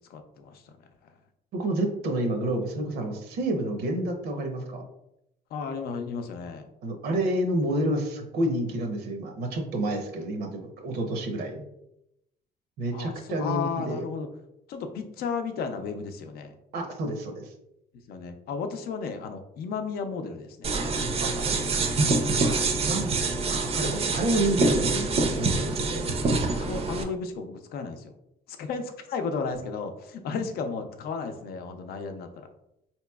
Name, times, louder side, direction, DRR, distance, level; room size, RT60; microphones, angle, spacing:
voice 1, 0.1-0.6 5.5-6.7 12.9-14.3 14.7-16.5 18.1-20.8 22.5-22.6 26.5-28.1 28.6-32.5, left 5 dB, 65° left, 7 dB, 0.5 m, -34 dB
voice 2, 1.5-4.8 6.8-10.5 10.8-11.6 12.8-14.0 16.7-17.5 21.3-21.8 22.2-26.1, right 1 dB, 70° right, 4 dB, 0.7 m, -29 dB
sound 1, 20.6-27.0, right 3 dB, 35° right, 0.5 m, -26 dB
4.0 x 2.9 x 2.3 m, 0.84 s
cardioid pair, 110°, 17 cm